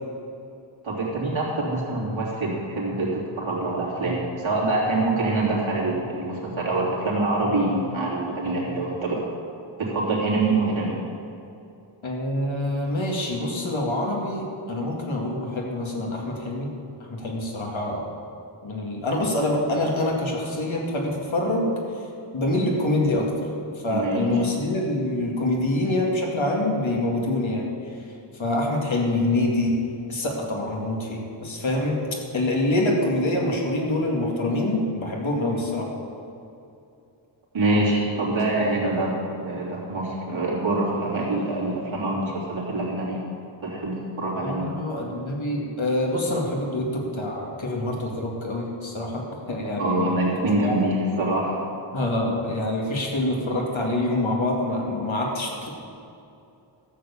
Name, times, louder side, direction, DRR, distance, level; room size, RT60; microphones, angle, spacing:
voice 1, 0.8-9.2 9.8-11.0 23.9-24.4 37.5-43.2 43.6-44.7 49.8-51.6, right 2 dB, 75° right, -5 dB, 3.2 m, -25 dB
voice 2, 12.0-16.7 17.0-18.1 18.6-21.8 22.3-23.3 23.8-27.7 28.3-32.0 32.3-35.9 44.4-50.2 50.5-50.7 51.9-55.7, left 1 dB, 70° left, -1 dB, 2.3 m, -25 dB
13.5 x 7.2 x 7.1 m, 2.7 s
wide cardioid pair, 110°, 48 cm